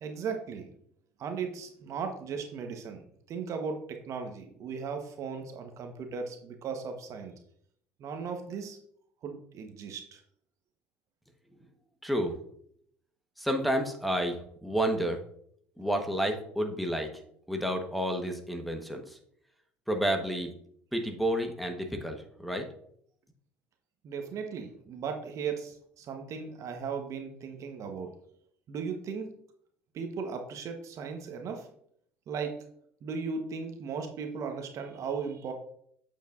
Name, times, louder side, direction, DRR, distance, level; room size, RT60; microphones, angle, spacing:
voice 1, 0.0-0.7 1.2-3.0 3.3-7.3 8.0-8.8 9.2-10.2 24.0-28.1 28.7-29.3 29.9-31.7 32.3-32.6 33.0-35.5, right 5 dB, 55° right, 5 dB, 1.2 m, -37 dB
voice 2, 12.0-12.4 13.4-15.2 15.8-17.1 17.5-19.2 19.9-20.5 20.9-22.7, equal, ahead, 3 dB, 1.3 m, -30 dB
8.0 x 7.0 x 2.6 m, 0.67 s
hypercardioid pair, 65°, 6 cm